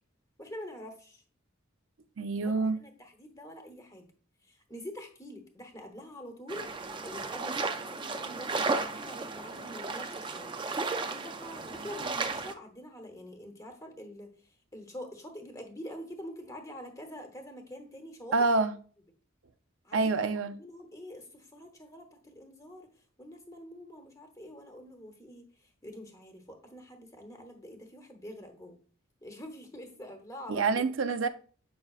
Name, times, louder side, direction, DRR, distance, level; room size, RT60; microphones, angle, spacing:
voice 1, 0.4-1.2 2.4-4.1 4.5-10.6 11.0-14.3 14.7-18.4 19.8-22.9 23.2-25.5 25.8-28.8 29.2-30.8, equal, 15° left, 1.0 m, -46 dB
voice 2, 2.2-2.8 18.3-18.7 19.9-20.5 30.5-31.3, right 3 dB, 75° right, 0.6 m, -27 dB
sound 1, 6.5-12.5, right 3 dB, 25° right, 0.4 m, -34 dB
7.7 x 5.4 x 2.4 m
head